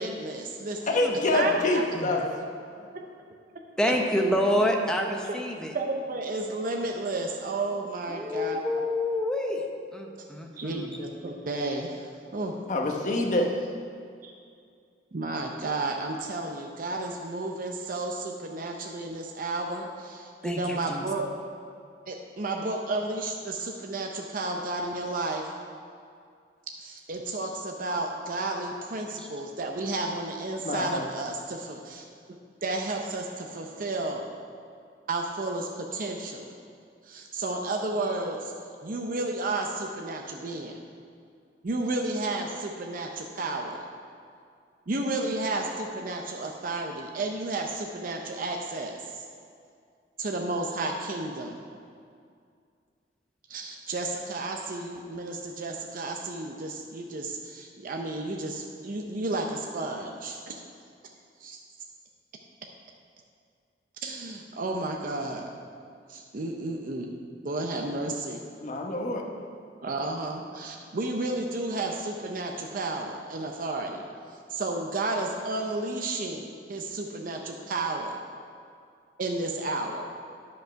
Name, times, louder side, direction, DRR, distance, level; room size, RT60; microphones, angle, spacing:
voice 1, 0.0-1.0 1.3-1.9 2.1-2.3 2.9-3.0 3.9-4.0 5.2-5.3 5.7-8.6 10.6-12.5 14.2-14.3 15.1-21.2 22.1-25.4 26.8-32.0 32.6-34.2 35.1-36.5 37.1-38.5 38.8-40.8 41.6-43.8 44.9-49.2 50.2-51.6 53.5-60.6 61.4-61.6 64.0-65.4 66.1-67.1 67.4-68.4 69.8-74.0 74.5-78.2 79.2-80.0, right 2 dB, 50° right, 1 dB, 0.6 m, -32 dB
voice 2, 0.9-2.2 2.8-2.9 12.7-13.5 30.6-31.0 68.6-69.2, left 2 dB, 45° left, 1 dB, 1.0 m, -26 dB
voice 3, 3.8-5.7 8.1-9.6 9.9-10.9 20.4-21.0 29.2-29.3, left 1 dB, 5° left, 1 dB, 0.7 m, -28 dB
10.0 x 5.4 x 5.7 m, 2.3 s
head